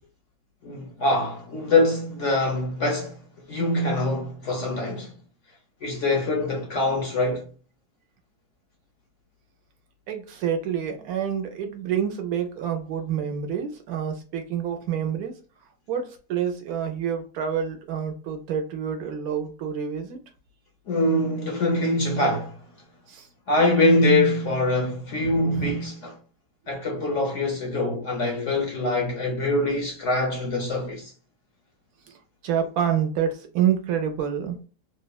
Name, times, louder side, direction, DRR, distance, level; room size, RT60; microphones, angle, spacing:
voice 1, 0.6-3.2 3.5-5.1 5.8-7.5 20.9-22.6 23.5-26.2 26.7-31.1, left 2 dB, 60° left, 0.8 m, -24 dB
voice 2, 10.1-15.3 15.9-20.2 23.1-23.3 25.2-25.8 32.1-32.2 32.4-34.6, right 8 dB, 70° right, 1.0 m, -28 dB
3.1 x 2.1 x 2.2 m
omnidirectional pair, 1.7 m